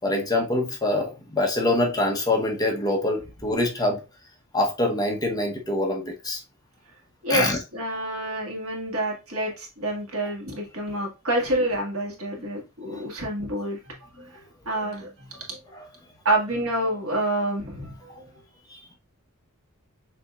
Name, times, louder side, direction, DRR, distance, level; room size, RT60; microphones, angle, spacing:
voice 1, 0.0-4.0 4.5-6.4 7.3-7.6 12.4-12.5 12.9-13.0 15.7-15.9 18.1-18.2 18.7-18.8, left 2 dB, 15° left, 0.8 m, -25 dB
voice 2, 7.2-15.6 16.2-18.3, right 1 dB, 70° right, 1.7 m, -28 dB
6.9 x 2.8 x 2.3 m
head